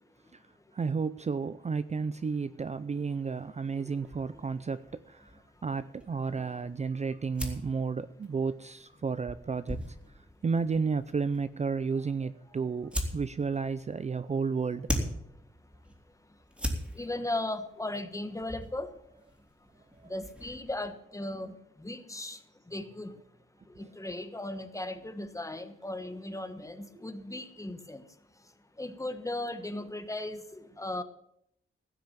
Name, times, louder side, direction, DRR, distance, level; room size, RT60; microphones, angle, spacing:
voice 1, 0.7-5.3 5.6-9.8 10.4-14.9 20.0-20.1, right 5 dB, 35° right, 14 dB, 0.5 m, -32 dB
sound 1, 4.0-20.9, equal, 5° right, 2.9 m, -41 dB
voice 2, 17.0-18.9 20.1-21.5 21.8-22.4 22.7-23.1 24.0-28.0 28.8-31.0, left 2 dB, 15° left, 9 dB, 1.2 m, -37 dB
16.0 x 6.0 x 9.1 m, 0.75 s
wide cardioid pair, 130°, 21 cm